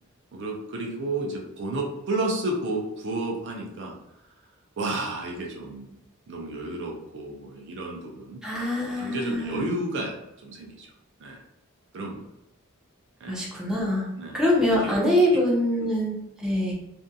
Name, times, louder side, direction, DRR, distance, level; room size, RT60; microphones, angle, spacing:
voice 1, 0.3-3.9 4.8-6.0 6.3-8.4 8.8-10.2 10.4-10.9 11.2-11.4 11.9-12.2 13.2-13.4 14.2-14.4 14.8-14.9 15.8-16.0, right 2 dB, 55° right, 0 dB, 0.5 m, -31 dB
voice 2, 8.4-9.7 13.3-14.1 14.3-16.7, left 1 dB, 5° right, -5 dB, 0.5 m, -24 dB
2.6 x 2.6 x 2.2 m, 0.85 s
head